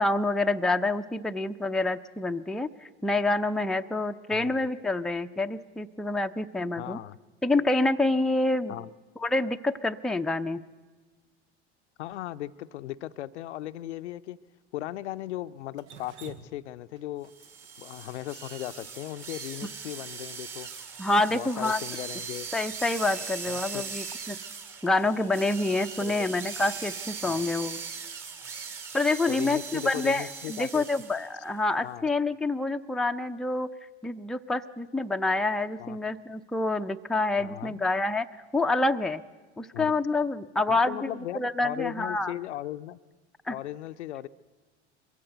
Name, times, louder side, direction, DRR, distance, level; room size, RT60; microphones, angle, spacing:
voice 1, 0.0-7.0 7.4-8.8 9.2-10.6 21.0-21.8 22.5-24.4 24.8-27.8 28.9-33.7 34.0-38.3 38.5-39.2 39.6-41.1 41.3-42.3 43.5-43.6, left 2 dB, ahead, 6 dB, 0.5 m, -27 dB
voice 2, 4.3-4.6 6.8-7.2 8.7-8.9 12.0-14.4 14.7-17.3 17.8-20.7 21.3-22.5 23.5-23.8 26.0-26.3 27.2-27.5 29.3-30.8 31.8-32.1 35.8-36.0 37.4-37.8 39.7-39.9 40.7-43.0 43.5-44.3, left 14 dB, 80° left, 12 dB, 0.6 m, -37 dB
Drip, 15.8-19.9, right 5 dB, 80° right, 1.2 m, -50 dB
sound 1, 17.3-31.3, right 5 dB, 45° right, 3.5 m, -40 dB
22.0 x 15.5 x 8.0 m, 1.3 s
hypercardioid pair, 85°, 34 cm